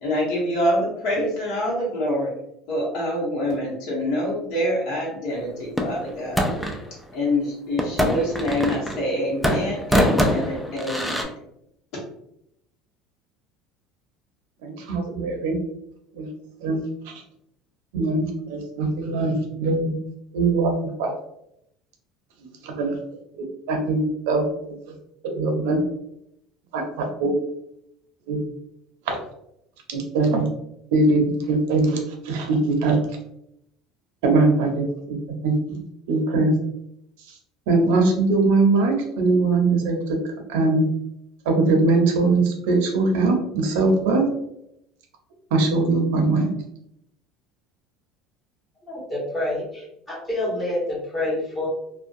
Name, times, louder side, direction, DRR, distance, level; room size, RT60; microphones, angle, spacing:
voice 1, 0.0-2.3 2.7-6.4 7.1-11.3, left 1 dB, 60° left, -6 dB, 1.0 m, -25 dB
sound 1, 5.8-6.8 7.8-9.1 9.4-11.2, equal, ahead, 0.3 m, -23 dB
voice 2, 14.6-15.6 16.1-16.3 16.6-17.1 17.9-20.0 20.3-21.1 22.6-23.0 23.3-24.7 25.2-25.8 26.7-27.3 28.3-28.4 29.1-29.2 29.9-30.5 30.9-33.0 34.2-35.2 35.4-36.5 37.7-40.2 40.5-40.8 41.5-44.3 45.5-46.5, right 3 dB, 85° right, 3 dB, 0.6 m, -21 dB
voice 3, 48.8-51.7, left 1 dB, 20° left, -6 dB, 1.3 m, -28 dB
2.6 x 2.2 x 2.5 m, 0.78 s
cardioid pair, 135°, 0 cm